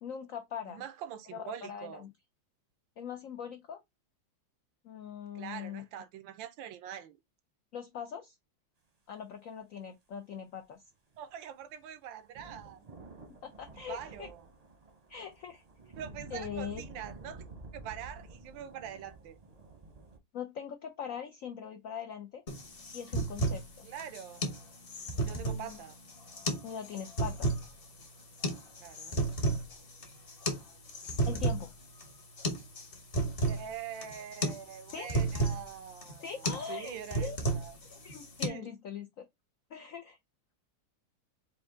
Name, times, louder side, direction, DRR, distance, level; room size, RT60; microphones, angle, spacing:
voice 1, 0.0-0.8 1.3-2.1 3.0-3.8 4.8-5.8 7.7-8.4 9.1-10.8 13.4-14.3 15.1-15.6 16.3-16.8 20.3-22.4 22.9-23.9 25.3-25.8 26.6-27.5 31.3-31.7 34.9-35.1 36.2-37.4 37.9-39.3 39.7-40.2, left 8 dB, 80° left, 0.7 m, -41 dB
voice 2, 0.7-2.0 5.3-7.2 11.2-12.9 13.7-14.5 16.0-17.5 17.7-19.4 23.8-24.4 25.2-26.0 28.8-29.2 33.4-37.7 38.1-38.7, right 9 dB, 80° right, 1.3 m, -44 dB
sound 1, 11.1-20.2, right 3 dB, 35° right, 0.7 m, -50 dB
sound 2, 22.5-38.5, right 2 dB, 40° left, 0.9 m, -34 dB
4.6 x 2.6 x 3.6 m
omnidirectional pair, 2.1 m